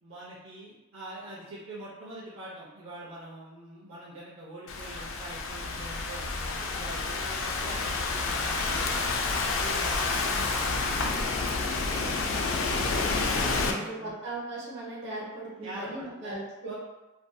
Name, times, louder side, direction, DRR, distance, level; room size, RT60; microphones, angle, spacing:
voice 1, 0.0-9.1 9.4-14.2 15.6-16.4 16.6-16.7, right 1 dB, 85° right, -8 dB, 0.6 m, -44 dB
Thunderstorm / Rain, 4.7-13.7, left 3 dB, 65° left, 0.3 m, -29 dB
voice 2, 10.2-10.6 13.3-16.7, right 2 dB, 60° right, -7 dB, 1.0 m, -39 dB
2.6 x 2.6 x 2.2 m, 1.1 s
head